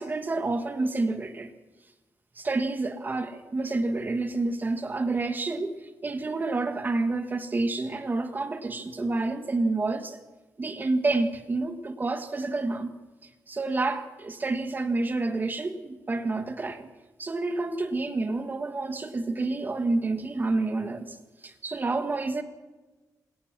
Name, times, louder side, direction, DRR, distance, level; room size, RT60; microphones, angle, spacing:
voice 1, 0.0-1.5 2.4-5.7 6.0-10.2 10.6-12.9 13.5-16.9 17.2-21.2 21.4-22.4, right 3 dB, 25° right, 1.8 m, -29 dB
27.0 x 22.0 x 6.2 m
wide cardioid pair, 175°, 7 cm